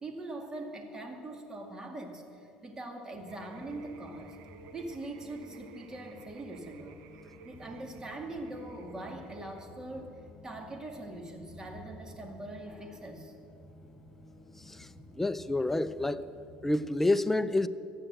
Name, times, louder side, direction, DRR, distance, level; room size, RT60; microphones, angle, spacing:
voice 1, 0.0-2.2 2.6-4.4 4.7-7.0 7.4-10.1 10.4-13.3, right 2 dB, 20° right, 3 dB, 2.1 m, -42 dB
sound 1, 3.1-17.0, left 2 dB, 30° left, 1.4 m, -53 dB
sound 2, 3.3-9.6, right 6 dB, 75° right, 1.0 m, -54 dB
voice 2, 14.7-16.3 16.6-17.7, left 2 dB, 10° left, 14 dB, 0.4 m, -29 dB
14.0 x 8.9 x 7.9 m, 2.7 s
cardioid pair, 115°, 3 cm